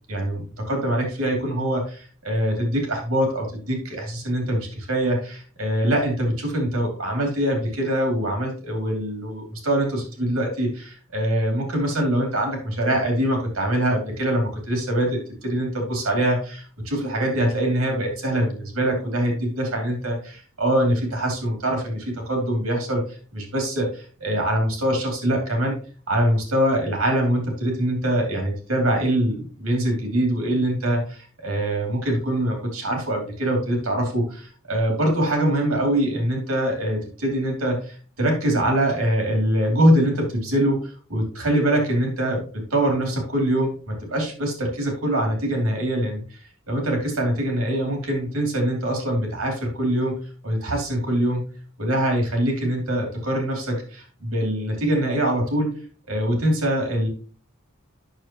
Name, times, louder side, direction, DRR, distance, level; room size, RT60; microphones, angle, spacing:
voice 1, 0.1-25.8 26.1-40.8 41.1-42.4 42.7-51.5 51.8-55.8 56.1-57.1, right 1 dB, 90° right, 2 dB, 2.6 m, -23 dB
9.0 x 6.4 x 2.9 m, 0.40 s
head